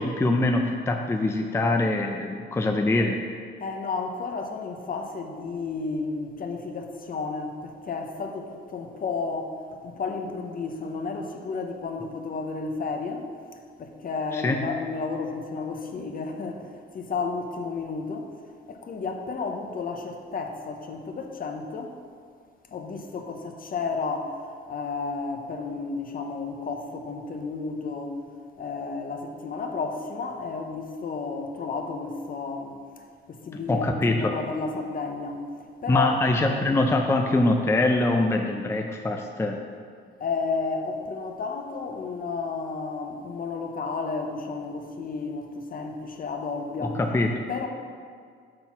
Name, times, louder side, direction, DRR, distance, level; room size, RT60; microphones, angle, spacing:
voice 1, 0.0-3.3 14.3-14.6 33.5-34.4 35.9-39.6 46.8-47.7, left 2 dB, 15° left, 3 dB, 0.5 m, -24 dB
voice 2, 3.6-13.3 13.8-16.7 16.9-18.3 18.7-21.9 22.7-24.4 24.7-28.2 28.6-32.8 33.3-35.4 35.8-36.1 40.2-47.0 47.5-47.7, left 4 dB, 45° left, 4 dB, 0.8 m, -32 dB
6.7 x 4.1 x 5.7 m, 2.1 s
cardioid pair, 90°, 20 cm